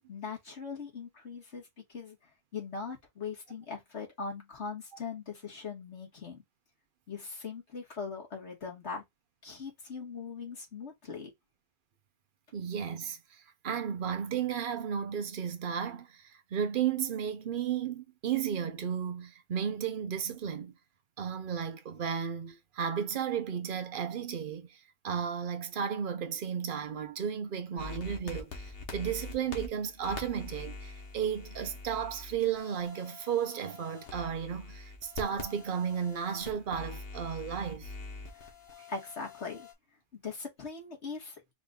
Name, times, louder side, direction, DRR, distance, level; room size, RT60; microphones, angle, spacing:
voice 1, 0.1-2.2 2.5-6.4 7.1-9.0 9.4-11.3 38.3-38.5 38.9-39.7 40.1-41.5, left 5 dB, 80° left, 2.4 m, -40 dB
voice 2, 12.5-20.8 21.2-37.9 38.8-38.9, right 8 dB, 55° right, 0.9 m, -34 dB
sound 1, 27.8-39.7, left 3 dB, 60° left, 1.4 m, -45 dB
4.8 x 2.7 x 3.7 m
omnidirectional pair, 1.1 m